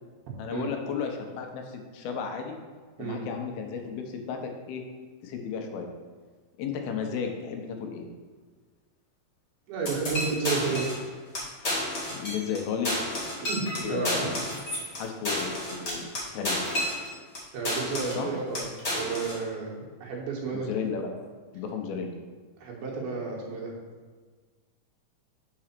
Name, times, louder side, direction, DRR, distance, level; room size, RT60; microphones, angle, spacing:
voice 1, 0.4-2.5 3.0-4.8 5.2-5.9 6.6-8.1 12.1-12.9 13.8-14.3 15.0-16.1 16.3-16.6 18.2-18.3 20.5-21.3 21.5-22.1, left 6 dB, 80° left, 4 dB, 2.7 m, -33 dB
voice 2, 9.7-10.9 13.4-14.3 17.5-20.7 22.6-23.7, right 4 dB, 80° right, -2 dB, 3.3 m, -32 dB
sound 1, 9.8-11.0 11.3-11.4 11.6-12.6 12.8-17.4 17.6-18.2 18.5-19.4, left 1 dB, 35° left, 1.1 m, -31 dB
6.2 x 4.9 x 5.8 m, 1.5 s
omnidirectional pair, 4.3 m